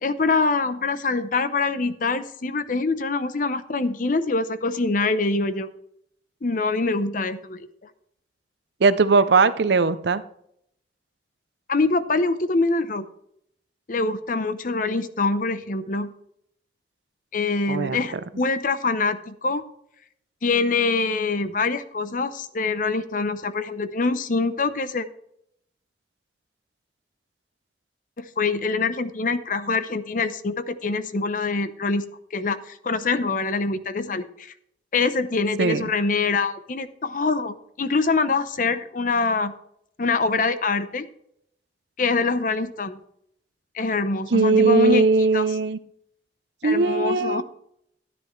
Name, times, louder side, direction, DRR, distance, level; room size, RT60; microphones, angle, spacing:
voice 1, 0.0-5.7 6.4-7.7 11.7-13.0 13.9-16.1 17.3-19.6 20.4-25.1 28.2-32.0 32.3-34.5 34.9-39.5 40.0-41.1 42.0-43.0 43.7-45.0 45.3-45.4 46.6-47.4, left 3 dB, 50° left, 12 dB, 0.7 m, -24 dB
voice 2, 8.8-10.2 17.7-18.1 35.6-35.9 44.3-45.8 46.6-47.4, right 4 dB, 70° right, 14 dB, 0.6 m, -19 dB
13.5 x 9.8 x 3.2 m, 0.72 s
head